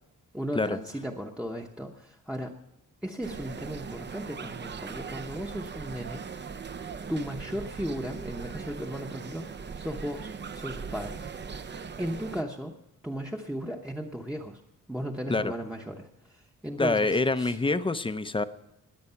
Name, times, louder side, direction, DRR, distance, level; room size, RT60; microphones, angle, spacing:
voice 1, 0.3-2.5 3.0-6.2 7.1-11.3 12.0-12.7 13.0-14.6 14.9-17.6, equal, 5° right, 0 dB, 0.9 m, -36 dB
sound 1, 3.2-12.4, right 5 dB, 35° right, 0.6 m, -40 dB
voice 2, 16.8-18.4, left 3 dB, 15° left, 11 dB, 0.6 m, -26 dB
20.5 x 8.3 x 5.7 m, 0.87 s
wide cardioid pair, 150°, 33 cm